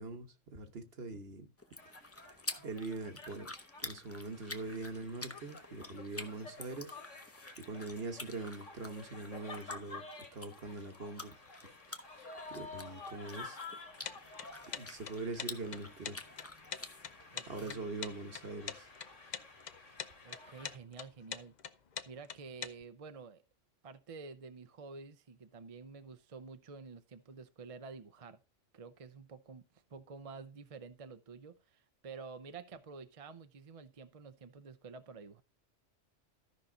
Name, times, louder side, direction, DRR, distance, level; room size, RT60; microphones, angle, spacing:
voice 1, 0.0-1.5 2.6-3.5 3.8-7.0 7.6-11.3 12.5-13.6 14.7-16.2 17.5-18.9, right 3 dB, 55° right, 1.4 m, -43 dB
sound 1, 1.6-17.7, left 2 dB, 15° left, 0.7 m, -49 dB
sound 2, 1.8-20.8, left 3 dB, 90° left, 2.3 m, -51 dB
sound 3, 14.0-22.7, left 7 dB, 50° left, 0.6 m, -43 dB
voice 2, 17.3-17.8 20.2-21.5 22.1-23.4 23.8-28.4 28.7-35.4, right 4 dB, 40° right, 0.6 m, -50 dB
13.5 x 5.6 x 3.8 m
omnidirectional pair, 1.2 m